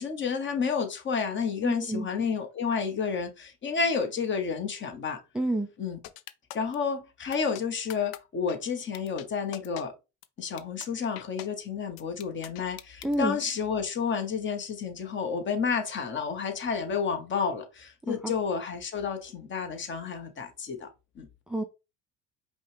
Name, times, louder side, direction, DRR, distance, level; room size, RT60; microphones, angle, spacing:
voice 1, 0.0-5.2 5.8-6.0 6.5-9.9 10.4-20.9 21.1-21.3, left 6 dB, 35° left, 1.1 m, -30 dB
voice 2, 1.6-2.1 5.3-5.7 13.0-13.4 18.1-18.3 21.5-21.6, right 1 dB, ahead, 0.4 m, -29 dB
sound 1, 6.0-6.8 7.3-7.6 7.9-8.2 8.5-8.6 8.9-9.3 9.5-9.8 10.2-10.3 10.6-10.9 11.2-11.5 12.0-13.2, left 13 dB, 85° left, 0.5 m, -42 dB
5.2 x 2.3 x 3.3 m
cardioid pair, 110°, 32 cm